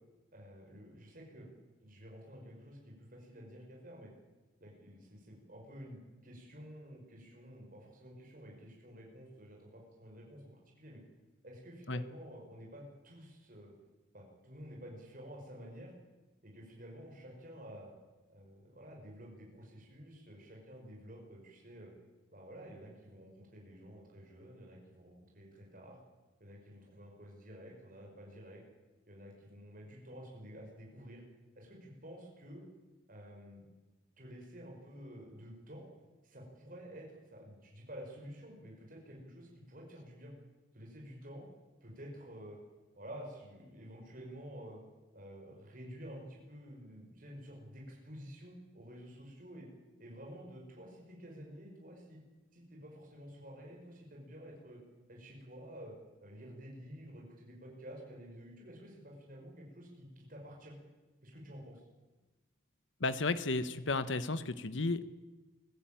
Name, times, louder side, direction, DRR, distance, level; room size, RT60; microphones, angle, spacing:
voice 1, 0.3-1.5 1.8-4.1 4.6-11.0 11.4-13.7 14.1-15.9 16.4-17.9 18.3-21.9 22.3-26.0 26.4-28.6 29.1-31.2 31.6-32.7 33.1-33.6 34.2-35.9 36.2-40.3 40.7-41.5 41.8-42.6 43.0-44.8 45.1-49.7 50.0-52.2 52.5-54.8 55.1-56.0 56.2-60.8 61.2-61.8, equal, 45° right, -1 dB, 5.6 m, -51 dB
voice 2, 63.0-65.2, left 3 dB, 70° left, 13 dB, 1.1 m, -33 dB
24.5 x 15.0 x 9.0 m, 1.2 s
head